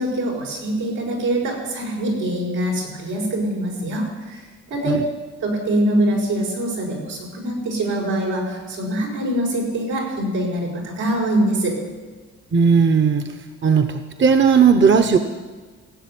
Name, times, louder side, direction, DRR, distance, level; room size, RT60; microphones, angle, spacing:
voice 1, 0.0-4.4 4.7-4.9 5.4-11.8, right 1 dB, 90° right, -2 dB, 5.8 m, -24 dB
voice 2, 12.5-13.2 13.6-15.2, right 6 dB, 40° right, 7 dB, 1.1 m, -16 dB
16.0 x 7.6 x 9.3 m, 1.4 s
cardioid pair, 90°, 30 cm